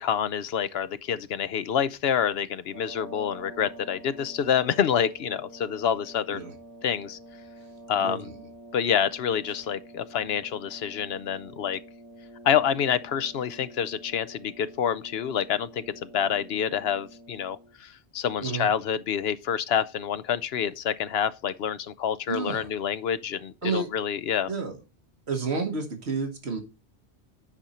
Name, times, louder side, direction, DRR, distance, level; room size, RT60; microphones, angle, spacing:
voice 1, 0.0-6.4 6.8-7.2 7.9-8.3 8.7-11.8 12.4-24.5, left 8 dB, 70° left, 0.9 m, -27 dB
sound 1, 2.6-17.8, right 1 dB, 20° right, 2.4 m, -47 dB
voice 2, 8.0-8.5 18.4-18.7 22.3-22.7 23.6-23.9 24.5-24.8 25.3-26.6, right 4 dB, 70° right, 1.6 m, -30 dB
9.9 x 5.2 x 4.3 m
omnidirectional pair, 1.1 m